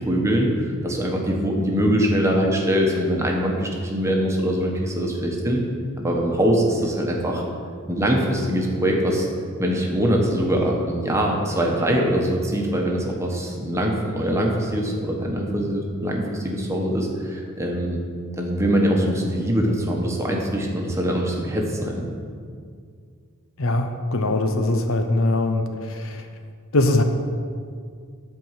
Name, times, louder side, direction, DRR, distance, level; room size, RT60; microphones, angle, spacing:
voice 1, 0.1-5.6 6.0-7.4 7.9-9.3 9.6-18.0 18.4-22.0, equal, 15° right, 0 dB, 1.2 m, -23 dB
voice 2, 23.6-26.2 26.7-27.0, left 2 dB, 65° left, 6 dB, 0.8 m, -22 dB
11.0 x 4.6 x 7.4 m, 2.2 s
head